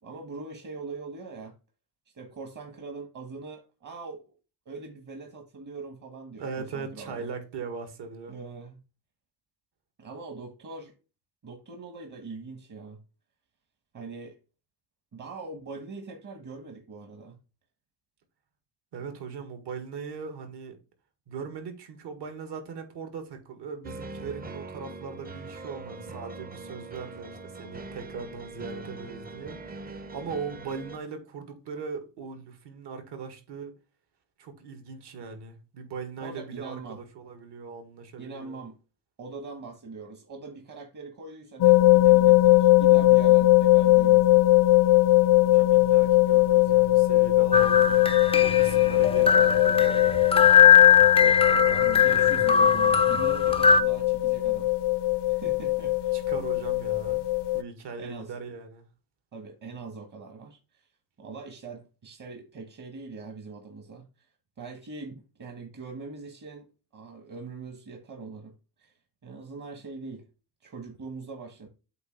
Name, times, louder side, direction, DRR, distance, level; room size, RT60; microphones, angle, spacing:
voice 1, 0.0-1.5 2.1-4.2 4.6-7.3 8.3-8.8 10.0-10.9 11.4-13.0 13.9-14.3 15.1-17.4 36.2-37.0 38.2-38.8 39.2-44.5 51.7-54.7 55.3-56.1 58.0-58.3 59.3-60.9 61.2-64.0 64.6-68.5 68.8-68.9 69.2-70.2 70.6-71.7, right 4 dB, 40° right, 1.6 m, -42 dB
voice 2, 6.3-8.4 18.9-20.8 21.3-33.7 34.4-38.6 45.4-48.1 48.4-50.4 51.1-52.9 56.1-57.2 57.5-58.9, right 5 dB, 60° right, 1.9 m, -39 dB
sound 1, 23.8-31.0, right 3 dB, 20° right, 0.8 m, -42 dB
sound 2, 41.6-57.6, left 17 dB, 60° left, 0.6 m, -20 dB
sound 3, 47.5-53.8, left 7 dB, 15° left, 0.4 m, -20 dB
8.0 x 2.8 x 5.8 m
cardioid pair, 130°, 46 cm